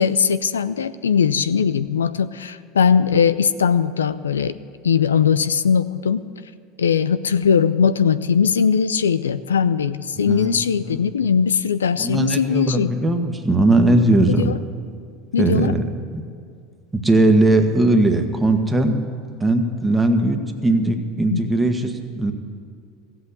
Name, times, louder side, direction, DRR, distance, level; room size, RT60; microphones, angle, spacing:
voice 1, 0.0-4.6 4.8-6.3 6.8-12.9 14.4-14.6 15.3-15.7 21.3-21.4, left 7 dB, 90° left, 14 dB, 0.4 m, -19 dB
voice 2, 10.3-11.2 12.0-14.5 15.4-15.9 16.9-19.0 19.4-22.3, right 2 dB, 15° right, 5 dB, 1.4 m, -19 dB
15.0 x 8.0 x 8.4 m, 2.2 s
hypercardioid pair, 85°, 0 cm